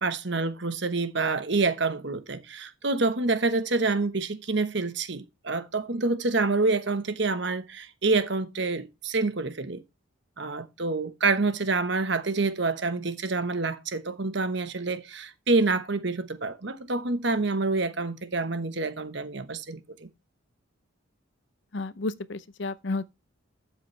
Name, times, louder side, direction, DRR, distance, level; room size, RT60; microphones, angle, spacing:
voice 1, 0.0-9.8 10.4-20.1, right 3 dB, 60° right, 1.1 m, -27 dB
voice 2, 21.7-23.0, left 3 dB, 60° left, 0.6 m, -31 dB
12.5 x 7.3 x 3.2 m
head